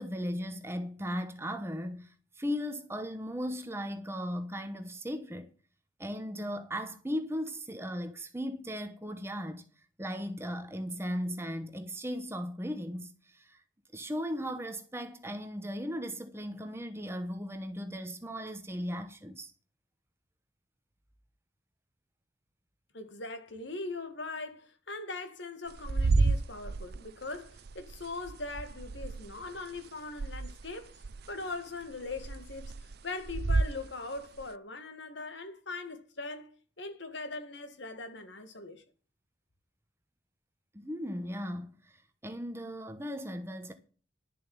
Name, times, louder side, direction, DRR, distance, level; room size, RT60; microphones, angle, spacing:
voice 1, 0.0-5.5 6.0-9.6 10.0-13.6 13.9-19.5 40.7-43.7, equal, 15° right, 1.0 m, -37 dB
voice 2, 22.9-31.0 31.3-38.8, left 3 dB, 65° left, 2.0 m, -41 dB
sound 1, 25.7-29.9 30.1-31.5 31.8-33.8 34.4-34.5, right 3 dB, 55° right, 0.5 m, -30 dB
11.5 x 7.3 x 7.2 m
head